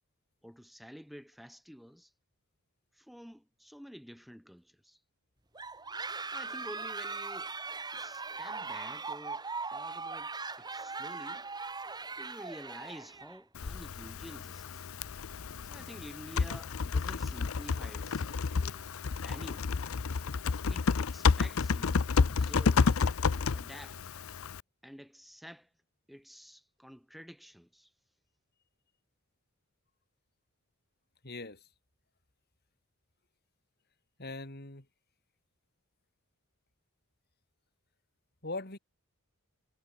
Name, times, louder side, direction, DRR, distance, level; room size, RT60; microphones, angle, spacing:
voice 1, 0.4-2.1 2.9-5.0 6.3-7.5 7.9-9.4 9.7-11.5 12.2-14.9 15.6-18.9 19.2-19.8 20.7-23.0 23.4-24.2 24.8-25.7 26.1-27.9, equal, ahead, 6.0 m, -50 dB
sound 1, 5.6-13.4, right 4 dB, 20° right, 2.0 m, -39 dB
Typing, 13.5-24.6, left 5 dB, 70° left, 0.6 m, -30 dB
voice 2, 31.2-31.6 34.2-34.8 38.4-38.8, left 2 dB, 45° left, 3.5 m, -40 dB
head